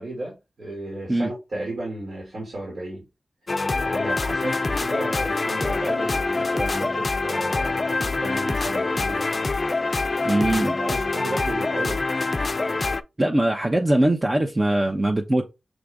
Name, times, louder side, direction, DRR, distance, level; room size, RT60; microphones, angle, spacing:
voice 1, 0.0-3.1 3.5-9.3 10.8-12.0, right 1 dB, 70° right, 2.1 m, -33 dB
sound 1, 3.5-13.0, left 3 dB, 50° left, 0.4 m, -25 dB
voice 2, 10.2-10.8 13.2-15.5, right 1 dB, 35° right, 0.7 m, -21 dB
6.1 x 2.5 x 3.4 m
cardioid pair, 40°, 0 cm